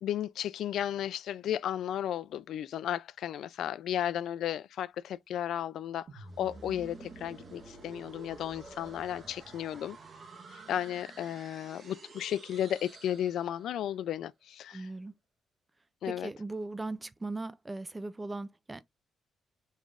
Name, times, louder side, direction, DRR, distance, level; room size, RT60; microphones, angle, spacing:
voice 1, 0.0-10.0 10.5-14.9 16.0-16.3, left 11 dB, 75° left, 0.3 m, -34 dB
sound 1, 6.1-14.0, right 3 dB, 35° right, 1.2 m, -50 dB
voice 2, 14.7-15.1 16.0-18.8, right 2 dB, 15° right, 0.3 m, -38 dB
5.2 x 3.2 x 2.4 m
cardioid pair, 145°, 0 cm